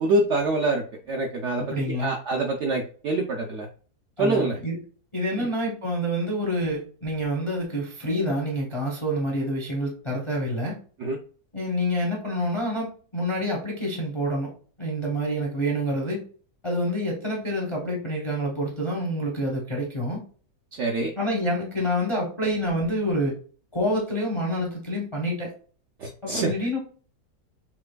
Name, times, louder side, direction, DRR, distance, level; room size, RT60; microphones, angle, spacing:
voice 1, 0.0-3.7 4.2-4.6 5.4-5.5 11.0-11.2 20.7-21.1 26.0-26.5, right 2 dB, 75° right, 1 dB, 0.6 m, -25 dB
voice 2, 1.6-2.1 4.2-4.8 5.1-10.8 11.5-14.5 14.8-16.2 16.6-20.2 21.2-23.3 23.7-25.5 26.2-26.8, equal, 35° left, -1 dB, 0.4 m, -27 dB
5.7 x 2.2 x 2.2 m, 0.42 s
omnidirectional pair, 1.7 m